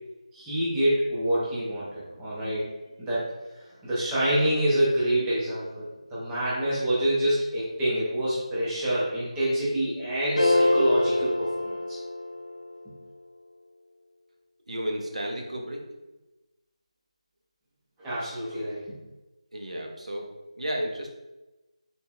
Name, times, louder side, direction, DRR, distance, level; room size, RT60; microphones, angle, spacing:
voice 1, 0.3-2.7 3.0-3.3 3.8-12.0 18.0-18.9, right 1 dB, 5° right, -10 dB, 0.5 m, -26 dB
F - Piano Chord, 10.4-12.6, left 2 dB, 65° left, 0.9 m, -24 dB
voice 2, 14.7-15.8 19.5-20.3 20.6-21.1, equal, 75° right, 1 dB, 0.8 m, -32 dB
3.9 x 3.9 x 2.3 m, 1.1 s
figure-of-eight pair, 170°, 4 cm